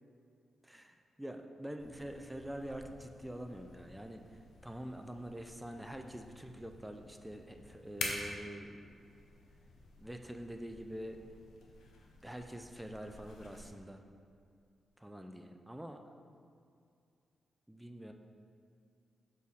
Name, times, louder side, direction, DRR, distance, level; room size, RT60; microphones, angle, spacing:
voice 1, 0.6-4.2 4.6-9.1 10.0-11.2 12.2-14.0 15.0-16.0 17.7-18.1, right 1 dB, 5° right, 5 dB, 0.4 m, -45 dB
sound 1, 1.8-13.7, left 3 dB, 85° left, 0.7 m, -49 dB
6.2 x 4.5 x 3.5 m, 2.4 s
cardioid pair, 75°, 0 cm